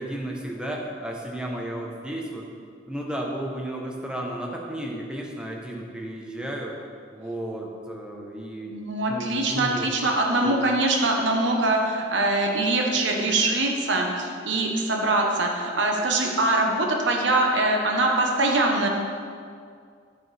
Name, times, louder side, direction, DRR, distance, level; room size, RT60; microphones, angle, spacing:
voice 1, 0.0-2.5 2.9-6.8 7.1-10.1 10.4-10.6, right 1 dB, 5° right, -1 dB, 1.0 m, -33 dB
voice 2, 8.7-18.9, right 2 dB, 70° right, 1 dB, 1.1 m, -23 dB
9.5 x 8.3 x 3.4 m, 2.2 s
head